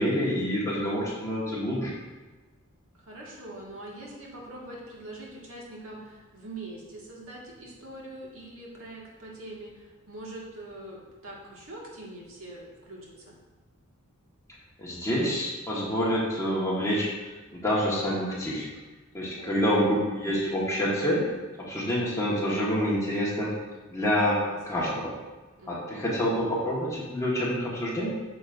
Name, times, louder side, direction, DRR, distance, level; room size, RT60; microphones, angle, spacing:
voice 1, 0.0-1.9 14.8-18.7 19.1-21.2 21.6-23.6 23.9-25.2 25.7-28.1, equal, 15° left, -5 dB, 1.5 m, -27 dB
voice 2, 2.9-13.4 19.4-19.6 24.4-24.6 25.6-25.9, right 1 dB, 70° right, -4 dB, 1.9 m, -43 dB
8.3 x 6.9 x 2.6 m, 1.3 s
head